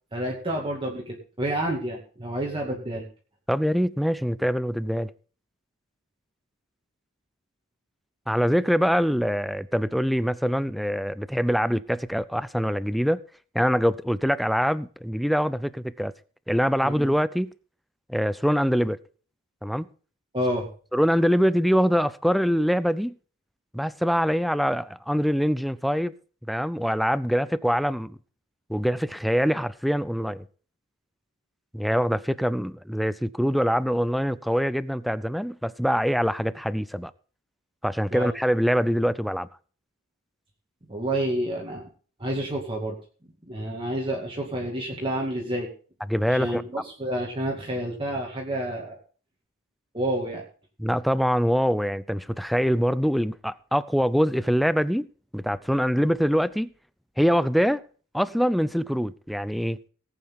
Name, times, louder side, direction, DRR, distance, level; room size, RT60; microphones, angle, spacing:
voice 1, 0.1-3.0 16.8-16.9 20.3-20.7 38.1-38.3 40.9-41.8 42.2-43.0 43.5-45.7 46.3-49.0 49.9-50.4, right 1 dB, 25° right, 2.3 m, -29 dB
voice 2, 3.5-5.1 8.3-13.2 13.5-16.1 16.5-17.5 18.1-19.0 19.6-19.9 20.9-23.1 23.7-26.1 26.5-28.2 28.7-30.4 31.7-37.1 37.8-39.5 46.1-46.6 50.8-55.1 55.3-56.7 57.2-57.8 58.1-59.8, equal, ahead, 0.5 m, -24 dB
19.0 x 8.7 x 3.7 m
head